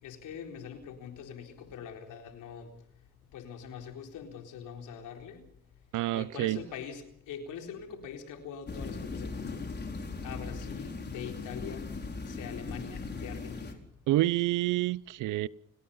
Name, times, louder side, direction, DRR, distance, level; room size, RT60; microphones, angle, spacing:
voice 1, 0.0-2.7 3.3-5.4 6.1-9.7 10.2-11.9 12.3-13.8, left 7 dB, 90° left, 4.1 m, -43 dB
voice 2, 5.9-6.6 14.1-15.5, right 16 dB, 90° right, 0.8 m, -28 dB
sound 1, 8.7-13.7, left 3 dB, 35° left, 4.4 m, -39 dB
30.0 x 18.5 x 5.7 m
cardioid pair, 90°, 30 cm